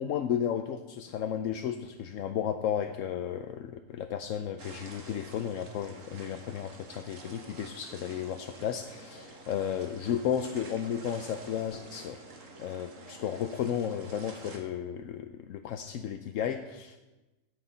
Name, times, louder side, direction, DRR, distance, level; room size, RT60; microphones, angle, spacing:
voice 1, 0.0-12.2 12.6-17.1, left 9 dB, 75° left, 8 dB, 1.0 m, -33 dB
sound 1, 4.6-14.6, right 3 dB, 70° right, 1.9 m, -49 dB
16.5 x 6.7 x 5.6 m, 1.1 s
omnidirectional pair, 1.4 m